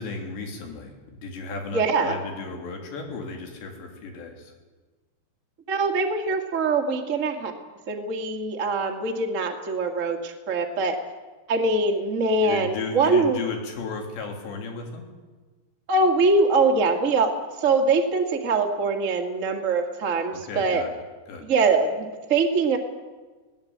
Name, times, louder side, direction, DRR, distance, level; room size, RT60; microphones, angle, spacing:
voice 1, 0.0-4.5 12.4-15.1 20.3-20.9 21.3-21.5, left 4 dB, 90° left, 3 dB, 5.4 m, -35 dB
voice 2, 1.7-2.2 5.7-7.5 7.9-11.0 11.5-13.4 15.9-20.8 21.4-22.8, right 3 dB, 40° right, 3 dB, 1.1 m, -23 dB
21.5 x 17.0 x 8.7 m, 1.3 s
omnidirectional pair, 4.9 m